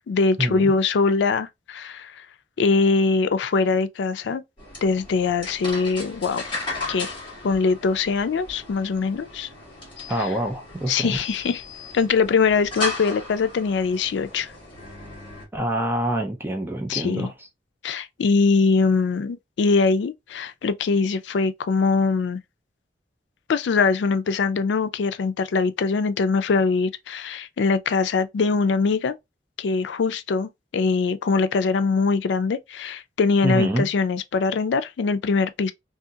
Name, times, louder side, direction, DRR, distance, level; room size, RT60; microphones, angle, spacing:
voice 1, 0.1-2.1 2.6-4.4 4.8-6.4 6.9-7.1 7.4-9.5 10.9-11.6 11.9-14.5 16.9-17.3 17.8-22.4 23.5-29.2 29.6-35.7, left 4 dB, 80° left, 0.4 m, -22 dB
sound 1, 4.6-15.4, left 2 dB, 25° left, 1.3 m, -36 dB
voice 2, 10.1-11.2 15.5-17.3 33.4-33.9, right 1 dB, 10° right, 0.4 m, -26 dB
2.7 x 2.7 x 2.3 m
head